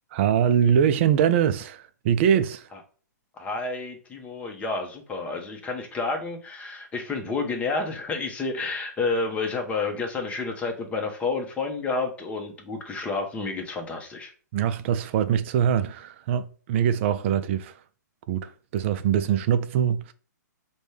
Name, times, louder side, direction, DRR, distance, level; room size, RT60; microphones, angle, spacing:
voice 1, 0.1-2.7 14.5-17.7 18.3-20.1, right 9 dB, 40° right, 0.4 m, -23 dB
voice 2, 3.4-14.3, left 3 dB, 15° left, 0.8 m, -30 dB
5.1 x 2.2 x 3.2 m
hypercardioid pair, 130°, 10 cm